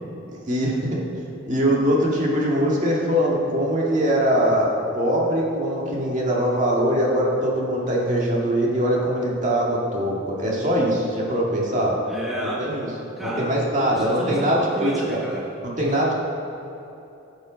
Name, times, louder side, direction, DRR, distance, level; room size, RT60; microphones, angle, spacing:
voice 1, 0.3-1.0 1.5-12.0 12.6-12.9 13.2-14.9 15.6-16.1, equal, 35° right, -3 dB, 1.8 m, -22 dB
voice 2, 12.1-12.7 13.2-15.5 15.9-16.0, right 1 dB, ahead, -6 dB, 1.3 m, -31 dB
16.0 x 6.6 x 5.1 m, 2.9 s
head